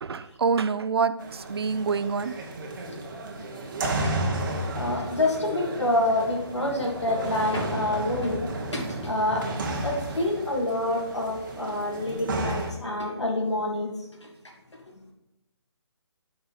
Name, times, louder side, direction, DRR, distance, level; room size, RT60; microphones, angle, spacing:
voice 1, 0.0-2.3, right 5 dB, 60° right, 14 dB, 0.6 m, -26 dB
sound 1, 1.2-12.7, right 2 dB, 45° right, 1.7 m, -32 dB
voice 2, 4.7-8.5 8.7-9.4 9.8-13.9, left 1 dB, 85° left, 0 dB, 2.7 m, -27 dB
8.5 x 6.1 x 5.7 m, 0.94 s
figure-of-eight pair, 145°, 14 cm